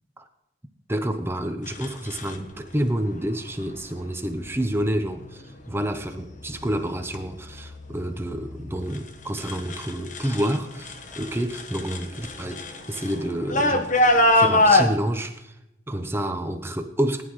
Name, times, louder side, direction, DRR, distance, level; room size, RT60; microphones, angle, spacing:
voice 1, 0.9-15.5 15.9-17.2, right 1 dB, 15° right, 7 dB, 0.8 m, -29 dB
sound 1, 1.7-2.3 3.5-3.8 4.4-4.8 5.4-5.9 6.3-10.6 10.8-14.9, left 1 dB, 45° left, 1.2 m, -24 dB
19.0 x 11.0 x 3.1 m, 0.87 s
head